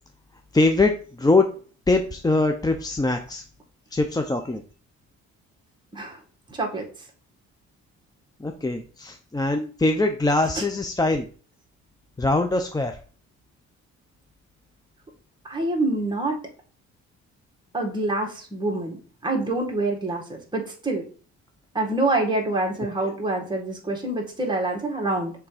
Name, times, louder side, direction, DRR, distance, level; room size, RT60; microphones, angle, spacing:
voice 1, 0.5-1.5 1.9-3.4 3.9-4.6 8.4-11.3 12.2-13.0, left 2 dB, 15° left, 5 dB, 0.7 m, -22 dB
voice 2, 6.5-6.8 10.6-10.7 15.4-16.4 17.7-19.0 19.2-21.0 21.7-25.3, right 2 dB, 15° right, 0 dB, 1.9 m, -26 dB
6.1 x 3.6 x 5.0 m, 0.40 s
cardioid pair, 90°, 30 cm